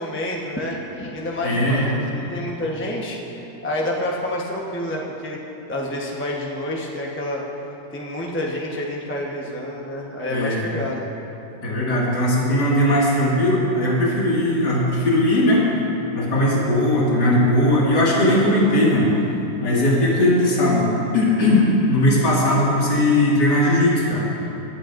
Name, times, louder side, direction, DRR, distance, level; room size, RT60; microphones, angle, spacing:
voice 1, 0.0-3.2 3.6-5.4 5.7-7.4 7.9-11.1, left 1 dB, 10° left, -3 dB, 0.7 m, -28 dB
voice 2, 1.4-2.1 10.3-10.6 11.6-15.7 16.1-19.1 19.6-24.3, left 1 dB, 65° left, -6 dB, 2.7 m, -18 dB
19.0 x 11.5 x 2.6 m, 3.0 s
omnidirectional pair, 2.0 m